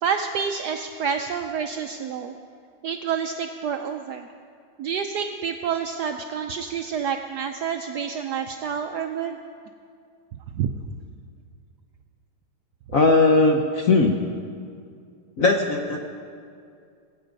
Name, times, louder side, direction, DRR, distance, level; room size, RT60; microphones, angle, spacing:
voice 1, 0.0-2.4 2.8-4.3 4.8-9.4 10.5-10.7, right 7 dB, 75° right, 6 dB, 0.9 m, -28 dB
voice 2, 12.9-14.2 15.4-16.0, left 3 dB, 60° left, 3 dB, 0.9 m, -18 dB
19.5 x 8.7 x 5.2 m, 2.3 s
omnidirectional pair, 2.3 m